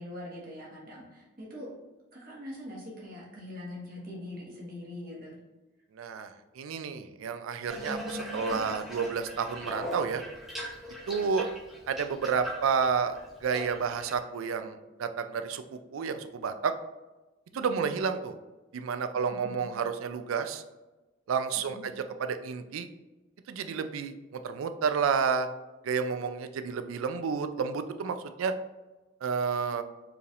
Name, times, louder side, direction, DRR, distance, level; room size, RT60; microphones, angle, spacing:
voice 1, 0.0-1.7 2.1-5.4 17.6-17.8 19.1-19.5 21.7-21.8, left 1 dB, 45° right, -4 dB, 1.3 m, -43 dB
voice 2, 5.9-10.2 11.1-11.5 11.9-16.7 17.5-18.4 18.7-20.6 21.3-21.9 22.2-22.9 23.5-25.5 25.8-28.5 29.2-29.8, right 6 dB, 90° right, 9 dB, 0.4 m, -30 dB
Water tap faucet / Bathtub (filling or washing), 7.7-14.2, equal, ahead, 1.0 m, -40 dB
4.8 x 3.3 x 2.5 m, 1.1 s
head